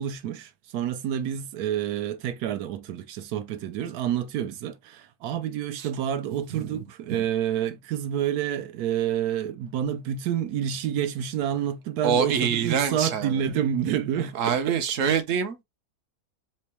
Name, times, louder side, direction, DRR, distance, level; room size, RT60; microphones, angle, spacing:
voice 1, 0.0-14.7, right 9 dB, 85° right, 1.2 m, -28 dB
voice 2, 6.3-6.8 7.1-7.3 12.0-13.4 14.3-15.6, right 7 dB, 65° right, 1.0 m, -26 dB
4.4 x 2.1 x 2.9 m
omnidirectional pair, 1.6 m